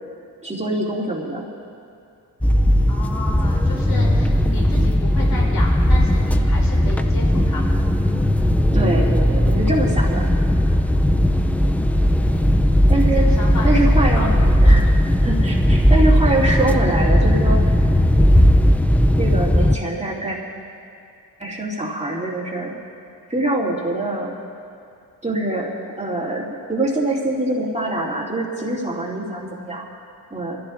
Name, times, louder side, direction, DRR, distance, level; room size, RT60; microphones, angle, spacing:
voice 1, 0.4-1.5 8.7-10.3 12.9-13.3 13.6-14.3 14.6-14.9 15.2-17.6 19.2-20.4 21.4-22.7 23.3-24.3 25.2-25.7 26.0-29.8 30.3-30.6, right 2 dB, 15° right, -4 dB, 2.6 m, -24 dB
sound 1, 2.4-19.8, equal, 5° left, 0.4 m, -17 dB
voice 2, 2.9-7.8 11.1-12.7 13.1-14.4, left 2 dB, 60° left, -4 dB, 3.7 m, -34 dB
26.0 x 14.5 x 2.6 m, 2.4 s
cardioid pair, 90°, 38 cm